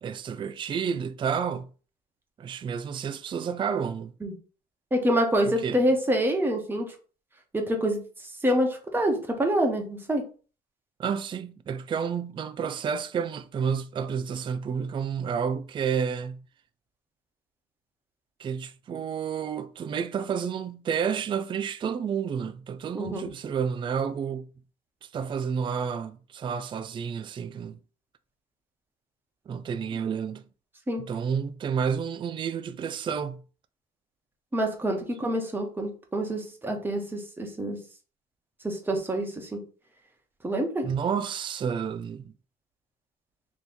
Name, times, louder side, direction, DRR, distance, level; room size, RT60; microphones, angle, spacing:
voice 1, 0.0-1.7 2.4-4.1 5.4-5.8 11.0-16.4 18.4-24.5 25.0-27.8 29.5-30.5 31.0-33.4 40.8-42.3, right 7 dB, 30° right, 0.4 m, -30 dB
voice 2, 4.9-6.9 7.5-8.0 8.4-10.2 22.9-23.3 30.9-31.0 34.5-37.8 38.6-39.6 40.4-40.9, right 1 dB, 10° right, 1.2 m, -26 dB
3.4 x 3.0 x 4.2 m
cardioid pair, 110°, 17 cm